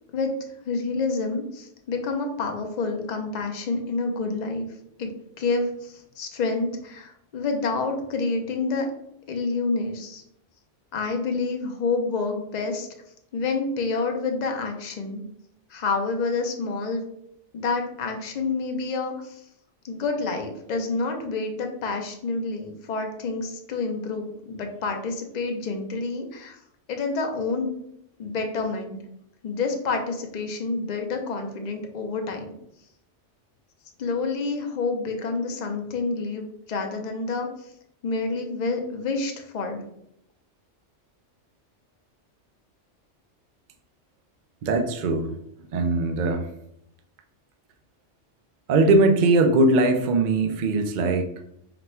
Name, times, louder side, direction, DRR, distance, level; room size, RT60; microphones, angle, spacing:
voice 1, 0.6-4.7 5.0-5.1 5.4-8.9 9.3-10.2 10.9-12.9 13.3-15.2 15.7-17.1 17.5-19.4 19.8-26.6 26.9-27.7 28.2-29.0 29.4-32.5 34.0-37.7 38.0-39.8, left 3 dB, 45° left, 3 dB, 0.6 m, -28 dB
voice 2, 44.6-45.3 45.7-46.5 48.7-51.3, right 2 dB, 55° right, 5 dB, 0.5 m, -20 dB
4.1 x 2.2 x 4.3 m, 0.75 s
omnidirectional pair, 1.3 m